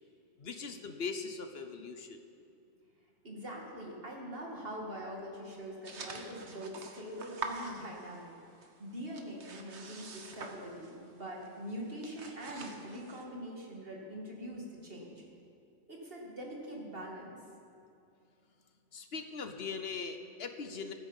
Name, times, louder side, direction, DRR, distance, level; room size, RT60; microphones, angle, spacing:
voice 1, 0.4-2.2 18.9-20.9, left 5 dB, 65° left, 7 dB, 1.2 m, -40 dB
voice 2, 3.2-8.3 8.8-15.2 15.9-17.4, equal, 60° right, -1 dB, 2.6 m, -43 dB
sound 1, 5.8-8.4 8.6-11.1 11.4-11.6 11.9-13.2, right 4 dB, 85° right, 1.5 m, -45 dB
15.5 x 9.8 x 7.3 m, 2.6 s
omnidirectional pair, 1.1 m